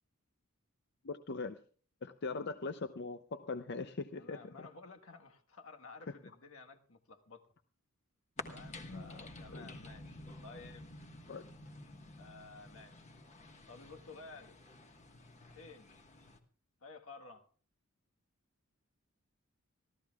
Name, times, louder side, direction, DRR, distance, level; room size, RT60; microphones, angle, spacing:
voice 1, 1.0-1.6 2.0-4.4 8.9-9.2 9.5-9.7 11.3-11.4, left 3 dB, 55° left, 0.6 m, -41 dB
voice 2, 4.1-7.5 8.5-10.9 12.2-13.1 13.7-14.6 15.5-16.0 16.8-17.4, left 3 dB, 75° left, 1.4 m, -53 dB
sound 1, 8.4-16.4, left 2 dB, 35° left, 1.4 m, -51 dB
25.5 x 14.5 x 2.4 m
head